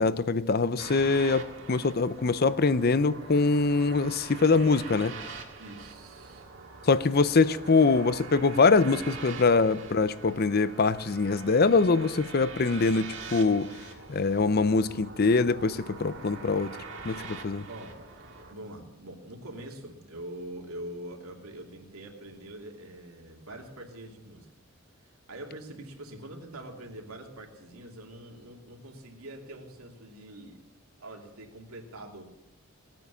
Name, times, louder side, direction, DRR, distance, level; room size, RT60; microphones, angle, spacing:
voice 1, 0.0-5.1 6.8-13.7 14.1-16.8 17.0-17.7, left 4 dB, 45° left, 0.6 m, -23 dB
sound 1, 0.8-18.5, right 4 dB, 55° right, 2.0 m, -44 dB
voice 2, 5.6-6.5 17.7-18.0 18.5-24.5 25.0-30.6 31.0-32.2, right 1 dB, 80° right, 2.8 m, -44 dB
19.0 x 9.2 x 6.9 m
head